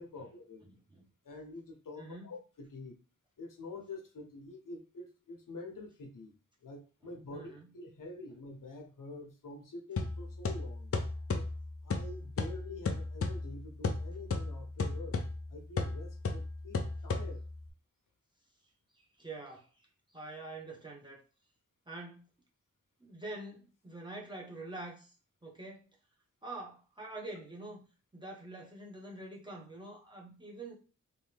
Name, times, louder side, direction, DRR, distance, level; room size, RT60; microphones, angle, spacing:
voice 1, 0.0-0.7 1.2-3.0 3.4-6.3 6.6-10.9 11.3-11.5 11.8-15.2 15.5-17.4, left 2 dB, 80° left, 0.9 m, -47 dB
voice 2, 0.6-1.1 2.0-2.3 7.3-7.7 18.9-19.7 20.1-21.2 21.9-22.3 23.0-25.1 25.4-25.9 26.4-27.8 28.1-30.7, right 2 dB, 15° right, 1.0 m, -45 dB
sound 1, 10.0-17.7, left 3 dB, 45° left, 0.5 m, -35 dB
3.2 x 2.7 x 3.3 m
wide cardioid pair, 110°, 32 cm